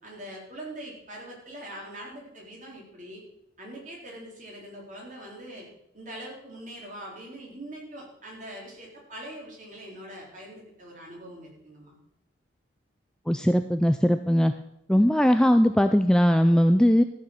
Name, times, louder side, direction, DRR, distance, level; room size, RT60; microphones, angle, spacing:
voice 1, 0.0-3.2 3.6-5.7 5.9-12.0, right 1 dB, 40° right, -2 dB, 3.7 m, -42 dB
voice 2, 13.3-14.5 14.9-17.0, equal, 5° left, 8 dB, 0.3 m, -20 dB
13.5 x 6.7 x 7.2 m, 0.78 s
head